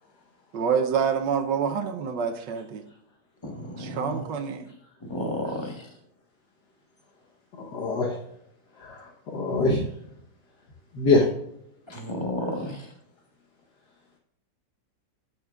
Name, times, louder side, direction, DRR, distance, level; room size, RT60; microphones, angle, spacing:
voice 1, 0.5-2.8 3.8-4.7, right 6 dB, 85° right, 7 dB, 1.5 m, -27 dB
voice 2, 3.4-4.3 5.0-5.9 11.9-12.9, left 1 dB, 15° left, 2 dB, 1.4 m, -32 dB
voice 3, 7.6-8.1 8.8-9.8 10.9-11.3, left 3 dB, 70° left, -1 dB, 1.7 m, -24 dB
13.5 x 6.4 x 2.4 m, 0.75 s
omnidirectional pair, 1.9 m